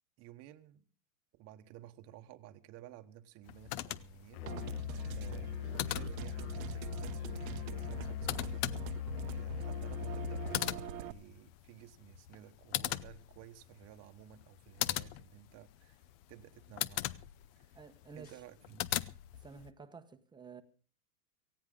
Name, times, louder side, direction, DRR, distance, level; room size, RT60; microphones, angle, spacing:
voice 1, 0.2-0.8 1.3-17.2 17.6-17.8 18.1-19.0, right 12 dB, 35° right, 1.2 m, -55 dB
sound 1, 3.4-19.7, left 15 dB, 40° left, 0.7 m, -41 dB
Musical instrument, 4.3-10.7, left 10 dB, 70° left, 0.8 m, -40 dB
sound 2, 4.5-11.1, right 12 dB, 60° right, 1.0 m, -44 dB
voice 2, 17.7-18.3 19.3-20.6, right 5 dB, 10° right, 1.0 m, -51 dB
18.0 x 16.0 x 3.8 m
hypercardioid pair, 130°, 46 cm